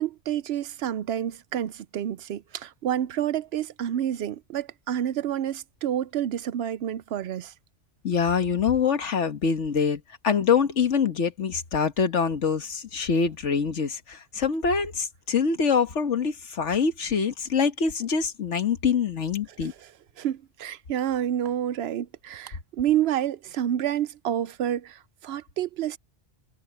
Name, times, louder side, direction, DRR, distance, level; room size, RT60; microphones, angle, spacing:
voice 1, 0.0-7.5 19.6-19.7 20.2-26.0, right 10 dB, 70° right, 0.8 m, -29 dB
voice 2, 8.0-19.7, left 6 dB, 85° left, 1.7 m, -25 dB
omnidirectional pair, 1.2 m